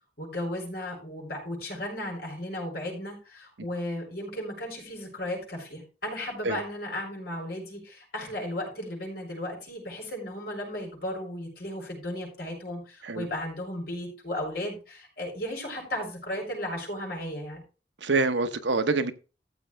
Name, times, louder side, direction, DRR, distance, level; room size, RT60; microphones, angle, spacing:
voice 1, 0.2-17.6, left 1 dB, 60° left, -1 dB, 7.2 m, -35 dB
voice 2, 18.0-19.1, right 3 dB, 85° right, 10 dB, 1.0 m, -25 dB
15.0 x 7.5 x 3.5 m, 0.33 s
head